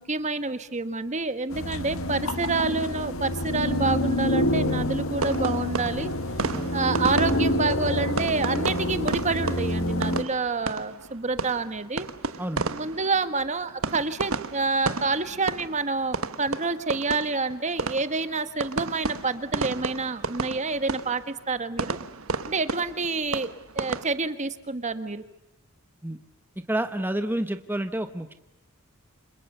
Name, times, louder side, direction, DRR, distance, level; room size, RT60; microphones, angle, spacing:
voice 1, 0.0-6.1 6.7-12.1 12.7-22.0 22.5-23.5 23.7-25.2, right 3 dB, 35° right, 11 dB, 1.4 m, -28 dB
sound 1, 1.5-10.2, left 1 dB, 70° left, 1.7 m, -27 dB
sound 2, 5.2-24.0, right 4 dB, 80° right, 1.4 m, -33 dB
voice 2, 12.4-12.7 26.0-26.2 26.7-28.3, right 1 dB, 10° right, 8 dB, 1.2 m, -29 dB
30.0 x 27.0 x 6.8 m, 0.92 s
head